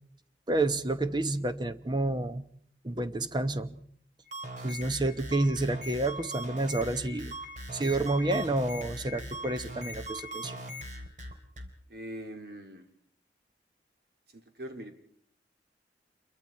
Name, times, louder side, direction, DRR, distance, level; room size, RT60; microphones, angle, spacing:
voice 1, 0.5-2.5 2.8-3.8 4.6-7.3 7.7-10.6, right 2 dB, 25° right, 10 dB, 0.9 m, -29 dB
sound 1, 4.3-11.7, equal, 45° right, 3.3 m, -40 dB
voice 2, 11.9-12.9 14.3-14.9, right 1 dB, 60° right, 4 dB, 3.0 m, -42 dB
28.0 x 23.0 x 4.5 m, 0.63 s
head